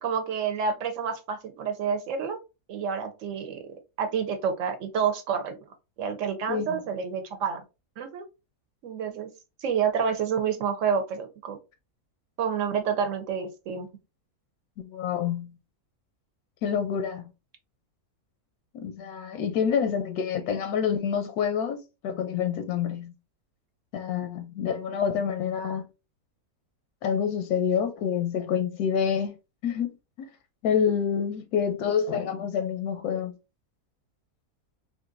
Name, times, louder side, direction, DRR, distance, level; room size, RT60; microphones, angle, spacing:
voice 1, 0.0-2.4 2.7-5.6 6.0-7.6 8.0-8.3 8.8-9.3 9.6-11.6 12.4-13.9, right 6 dB, 65° right, 0.9 m, -29 dB
voice 2, 6.5-6.8 14.8-15.5 16.6-17.2 18.7-23.1 23.9-25.8 27.0-29.3 29.6-30.3 30.6-33.3, left 7 dB, 85° left, 1.1 m, -27 dB
3.8 x 2.4 x 2.5 m
omnidirectional pair, 1.6 m